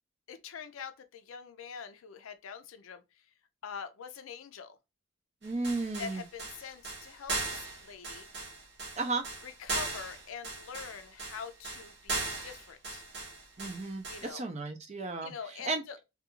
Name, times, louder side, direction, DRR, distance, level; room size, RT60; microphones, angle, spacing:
voice 1, 0.3-3.3 3.6-4.8 6.0-8.3 9.4-13.0 14.1-14.4 15.2-16.0, left 6 dB, 80° left, 0.4 m, -44 dB
voice 2, 5.4-6.2 9.0-9.2 13.6-15.3 15.6-15.8, right 3 dB, 30° right, 0.4 m, -34 dB
sound 1, 5.4-14.3, right 2 dB, 55° right, 0.8 m, -38 dB
2.3 x 2.3 x 2.9 m
head